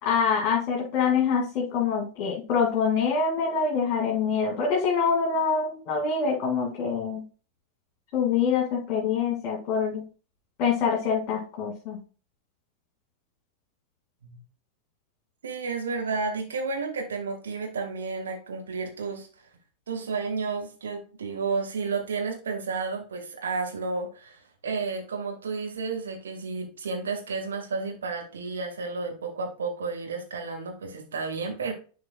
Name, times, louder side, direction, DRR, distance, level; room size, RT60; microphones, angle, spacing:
voice 1, 0.0-7.2 8.1-10.0 10.6-12.0, left 6 dB, 40° left, -1 dB, 2.1 m, -25 dB
voice 2, 15.4-19.3 19.9-31.7, right 4 dB, 65° right, 2 dB, 2.0 m, -32 dB
11.0 x 4.7 x 2.4 m, 0.37 s
figure-of-eight pair, 90°, 0 cm